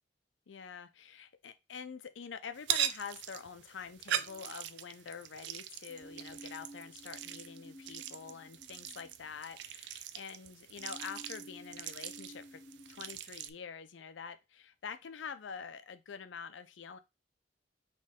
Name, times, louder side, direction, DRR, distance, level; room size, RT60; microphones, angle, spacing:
voice 1, 0.5-12.6 12.9-17.0, left 6 dB, 80° left, 0.5 m, -46 dB
sound 1, 2.6-13.5, right 11 dB, 65° right, 0.3 m, -41 dB
sound 2, 4.2-5.2 5.9-9.8 10.8-13.2, equal, 30° left, 0.8 m, -54 dB
4.2 x 3.1 x 3.5 m
head